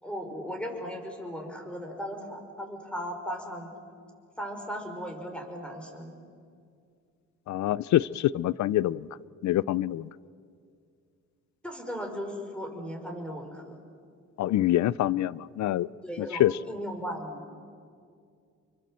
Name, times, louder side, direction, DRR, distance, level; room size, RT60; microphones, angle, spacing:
voice 1, 0.0-3.7 4.4-6.1 11.6-13.8 16.0-17.5, equal, 5° left, 3 dB, 5.4 m, -37 dB
voice 2, 7.5-9.1 9.4-10.1 14.4-15.9 16.2-16.6, left 13 dB, 65° left, 21 dB, 0.6 m, -25 dB
28.0 x 23.5 x 7.6 m, 2.2 s
cardioid pair, 90°, 30 cm